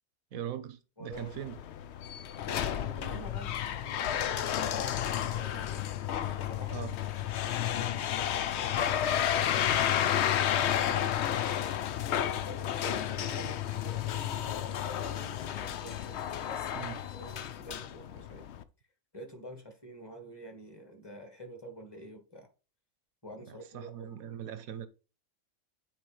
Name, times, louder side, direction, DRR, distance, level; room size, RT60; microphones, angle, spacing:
voice 1, 0.3-1.6 6.7-6.9 10.8-11.1 16.7-17.0 23.5-24.9, right 10 dB, 80° right, 1.2 m, -41 dB
voice 2, 1.0-1.3 2.4-5.8 6.4-7.0 7.4-10.2 11.2-16.9 17.1-18.5 19.1-22.5 23.2-24.3, equal, 15° left, 1.6 m, -48 dB
sound 1, 1.1-18.6, left 10 dB, 65° left, 0.7 m, -32 dB
9.4 x 4.5 x 3.2 m
omnidirectional pair, 1.5 m